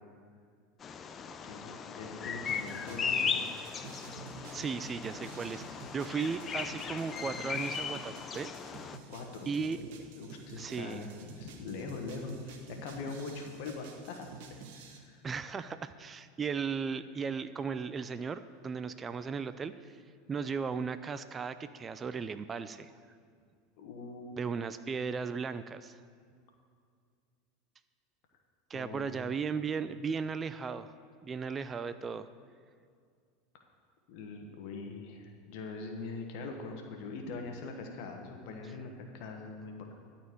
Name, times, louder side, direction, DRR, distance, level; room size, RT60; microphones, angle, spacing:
Bird vocalization bird call bird song, 0.8-9.0, left 6 dB, 30° left, 0.5 m, -37 dB
voice 1, 1.4-3.4 9.1-9.5 9.8-9.9 10.1-15.2 23.8-24.4 28.7-29.4 34.1-39.9, left 3 dB, 60° left, 3 dB, 1.3 m, -42 dB
sound 1, 2.5-15.0, right 4 dB, 65° right, 1.1 m, -50 dB
voice 2, 4.5-8.5 9.5-9.8 10.6-11.0 15.2-19.9 20.3-22.9 24.4-26.0 28.7-30.9 31.2-32.3, right 5 dB, 25° right, 12 dB, 0.4 m, -36 dB
12.0 x 4.4 x 8.4 m, 2.2 s
hypercardioid pair, 95°, 0 cm